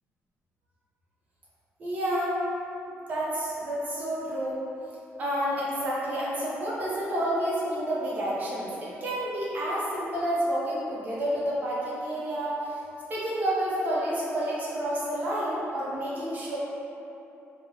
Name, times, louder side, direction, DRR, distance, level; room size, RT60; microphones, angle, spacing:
voice 1, 1.8-2.4 2.9-4.6 5.2-12.8 13.1-16.6, right 1 dB, 35° right, -8 dB, 0.7 m, -29 dB
3.4 x 2.1 x 2.8 m, 2.9 s
cardioid pair, 175°, 5 cm